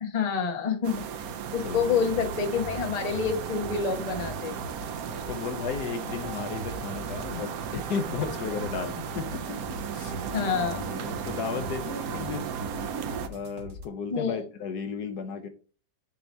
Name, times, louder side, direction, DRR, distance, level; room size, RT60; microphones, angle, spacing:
voice 1, 0.0-1.0 1.5-4.5 10.3-10.9 14.1-14.4, left 6 dB, 30° left, 0.8 m, -27 dB
sound 1, 0.8-13.3, right 7 dB, 65° right, 1.0 m, -35 dB
sound 2, 1.5-13.9, equal, 85° right, 1.8 m, -43 dB
voice 2, 1.6-2.2 5.1-12.5 13.3-15.5, left 6 dB, 65° left, 1.3 m, -35 dB
6.9 x 2.9 x 5.2 m
omnidirectional pair, 1.9 m